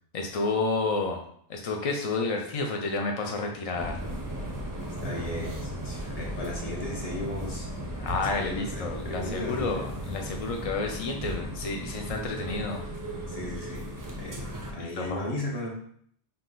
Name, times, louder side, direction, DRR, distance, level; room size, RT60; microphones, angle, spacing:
voice 1, 0.1-1.2 1.5-4.0 8.0-12.8 14.7-15.3, left 3 dB, 60° left, 2 dB, 0.3 m, -30 dB
sound 1, 3.7-14.7, right 1 dB, 25° right, 0.4 m, -36 dB
voice 2, 5.0-7.7 8.0-9.9 13.3-13.8 14.2-15.7, left 1 dB, 35° left, -3 dB, 1.0 m, -36 dB
3.8 x 2.8 x 3.8 m, 0.64 s
omnidirectional pair, 1.2 m